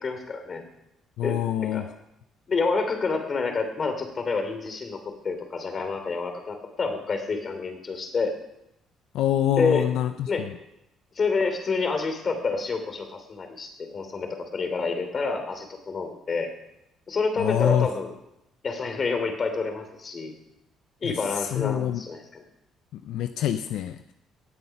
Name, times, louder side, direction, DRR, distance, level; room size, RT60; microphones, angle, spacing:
voice 1, 0.0-0.6 1.2-1.8 2.5-5.0 5.2-8.3 9.6-9.8 10.3-10.5 11.1-16.5 17.1-18.1 18.6-20.3 21.0-22.4, left 4 dB, 40° left, 6 dB, 2.9 m, -28 dB
voice 2, 1.2-1.9 9.1-10.5 17.4-17.9 21.0-21.1 21.4-22.0 22.9-24.1, left 11 dB, 80° left, 9 dB, 0.6 m, -26 dB
18.0 x 8.0 x 5.9 m, 0.84 s
cardioid pair, 100°, 0 cm